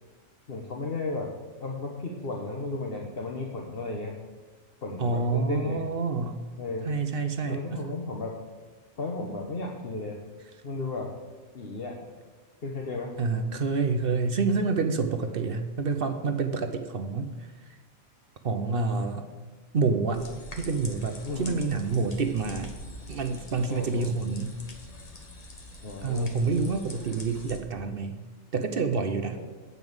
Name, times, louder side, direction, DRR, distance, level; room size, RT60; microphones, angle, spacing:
voice 1, 0.5-1.3 1.6-4.1 4.8-5.8 6.6-6.9 7.5-8.3 9.0-10.2 10.6-11.1 11.5-12.0 12.6-13.1 21.2-21.5 23.7-24.1 25.8-26.3 29.4-29.5, left 3 dB, 50° left, 0 dB, 1.2 m, -34 dB
voice 2, 5.0-6.4 6.9-7.8 13.2-17.8 18.4-19.3 19.7-20.3 20.6-22.7 23.1-24.6 26.0-28.2 28.5-29.4, right 4 dB, 50° right, 7 dB, 0.9 m, -28 dB
sound 1, 20.1-27.6, left 1 dB, 30° left, 1.2 m, -44 dB
9.3 x 5.5 x 7.8 m, 1.3 s
omnidirectional pair, 1.3 m